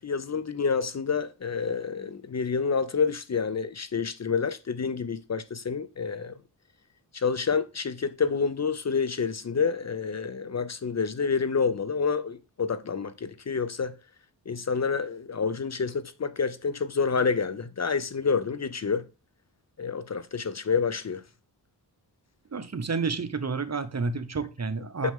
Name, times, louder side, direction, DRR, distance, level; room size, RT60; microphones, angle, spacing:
voice 1, 0.0-6.3 7.1-13.9 14.5-19.1 19.8-21.2 25.0-25.1, left 5 dB, 40° left, 0.6 m, -28 dB
voice 2, 22.5-25.1, right 4 dB, 40° right, 0.9 m, -30 dB
6.1 x 6.1 x 3.6 m
cardioid pair, 55°, 41 cm